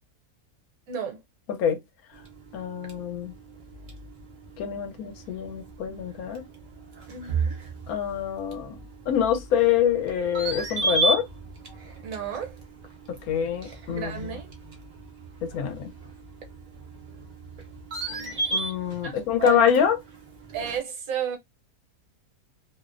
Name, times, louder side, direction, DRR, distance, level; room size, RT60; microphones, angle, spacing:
voice 1, 0.9-1.2 7.1-7.6 12.0-12.6 13.9-14.5 17.9-18.5 19.0-19.7 20.5-21.4, right 7 dB, 70° right, 1.1 m, -33 dB
sound 1, 2.1-20.8, right 3 dB, 50° right, 0.5 m, -35 dB
voice 2, 2.5-3.3 4.6-6.4 7.9-8.8 9.1-11.3 13.3-14.3 15.4-15.9 18.5-20.0, left 8 dB, 75° left, 1.0 m, -25 dB
2.6 x 2.0 x 2.4 m
omnidirectional pair, 1.6 m